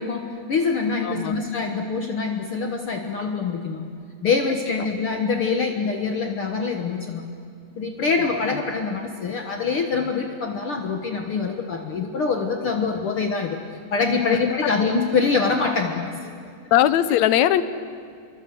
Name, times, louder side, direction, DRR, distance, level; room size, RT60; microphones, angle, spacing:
voice 1, 0.0-3.9 4.2-7.3 7.8-13.6 13.9-16.3, left 4 dB, 50° left, 3 dB, 2.0 m, -24 dB
voice 2, 1.0-1.3 4.8-4.9 8.5-8.6 16.7-17.6, left 12 dB, 70° left, 13 dB, 2.1 m, -19 dB
28.5 x 24.0 x 8.1 m, 2.2 s
omnidirectional pair, 3.6 m